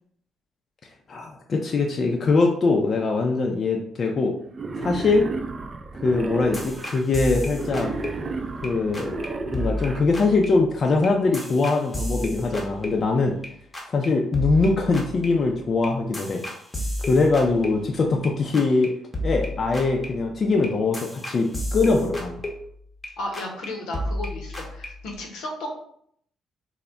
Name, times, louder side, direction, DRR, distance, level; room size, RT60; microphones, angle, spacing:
voice 1, 1.1-4.3 4.8-5.3 6.0-7.9 8.6-13.4 13.9-16.4 17.0-18.9 19.2-22.4, left 3 dB, 45° left, 1 dB, 0.4 m, -22 dB
Wild animals, 4.5-7.0 7.5-10.0, right 3 dB, 45° right, 0.3 m, -33 dB
sound 1, 6.5-8.7 8.9-9.3 9.5-13.5 13.7-14.0 14.3-18.3 18.5-18.8 19.1-23.1 23.3-23.7 23.9-25.1, left 1 dB, 20° left, 0.7 m, -32 dB
voice 2, 23.2-25.8, left 1 dB, 85° left, 1 dB, 0.7 m, -34 dB
2.1 x 2.1 x 3.6 m, 0.65 s
cardioid pair, 90°, 0 cm